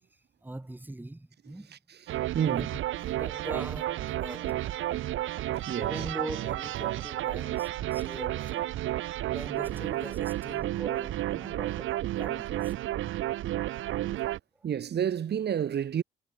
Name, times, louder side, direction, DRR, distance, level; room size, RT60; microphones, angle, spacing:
voice 1, 0.1-1.8 2.4-2.7 3.0-4.8 5.8-8.8 9.3-12.8 13.8-14.1, right 2 dB, 10° right, 2.1 m, -42 dB
voice 2, 1.4-2.1 2.3-2.7 5.7-6.0 14.6-16.0, right 9 dB, 55° right, 2.5 m, -30 dB
sound 1, 2.1-14.4, right 14 dB, 80° right, 1.6 m, -32 dB
cardioid pair, 90°, 20 cm